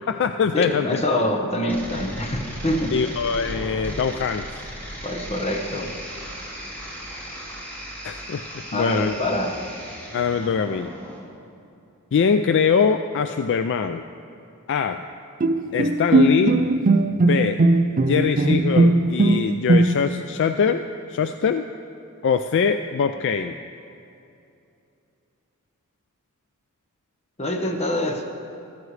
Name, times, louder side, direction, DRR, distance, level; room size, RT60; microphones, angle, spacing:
voice 1, 0.0-1.0 2.9-4.6 8.0-9.1 10.1-10.9 12.1-14.0 14.7-15.0 15.7-16.6 17.2-17.6 17.9-21.7 22.2-23.5, left 6 dB, 55° left, 8 dB, 0.3 m, -23 dB
voice 2, 0.5-3.1 5.0-6.0 8.7-9.6 27.4-28.2, left 1 dB, 30° left, 2 dB, 1.1 m, -25 dB
sound 1, 1.7-11.2, equal, 10° left, 2.2 m, -36 dB
Bowed string instrument, 15.4-20.3, right 2 dB, 40° right, 0.5 m, -18 dB
14.5 x 14.0 x 3.2 m, 2.7 s
head